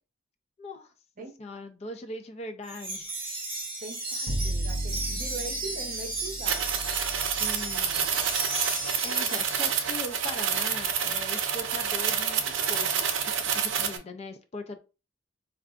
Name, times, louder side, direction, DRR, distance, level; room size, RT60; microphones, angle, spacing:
voice 1, 0.6-0.9 1.4-3.1 7.4-8.1 9.0-14.8, left 2 dB, 35° left, 0.3 m, -40 dB
Wind chime, 2.6-10.1, right 2 dB, 25° right, 1.1 m, -35 dB
voice 2, 3.8-6.8, right 2 dB, 45° right, 0.7 m, -41 dB
Bowed string instrument, 4.3-10.4, right 1 dB, 75° left, 0.7 m, -36 dB
sound 1, 6.4-14.0, right 7 dB, 85° right, 0.5 m, -28 dB
4.5 x 2.4 x 2.4 m
head